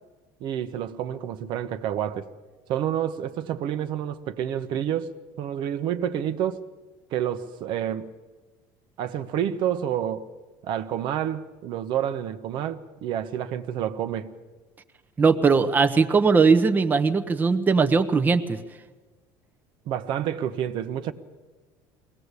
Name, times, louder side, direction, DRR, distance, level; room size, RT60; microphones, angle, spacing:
voice 1, 0.4-2.3 2.7-6.7 7.1-8.1 9.0-10.2 10.6-14.3 19.9-21.1, right 10 dB, 60° right, 1.0 m, -29 dB
voice 2, 15.2-18.6, right 4 dB, 20° right, 0.9 m, -20 dB
22.0 x 18.0 x 8.3 m
cardioid pair, 130°, 9 cm